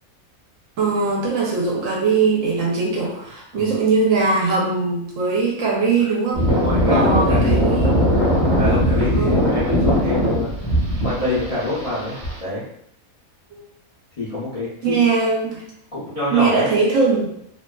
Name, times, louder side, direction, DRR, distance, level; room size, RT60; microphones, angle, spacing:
voice 1, 0.8-6.5 6.8-8.0 8.9-9.4 13.5-13.6 14.8-15.6 16.3-17.3, right 4 dB, 70° right, -2 dB, 0.8 m, -20 dB
sound 1, 6.3-12.4, equal, 30° right, 0.7 m, -19 dB
voice 2, 6.5-7.6 8.6-10.7 11.0-12.6 14.2-14.9 15.9-16.7, left 2 dB, 45° left, -10 dB, 0.4 m, -26 dB
2.6 x 2.3 x 2.2 m, 0.75 s
omnidirectional pair, 1.6 m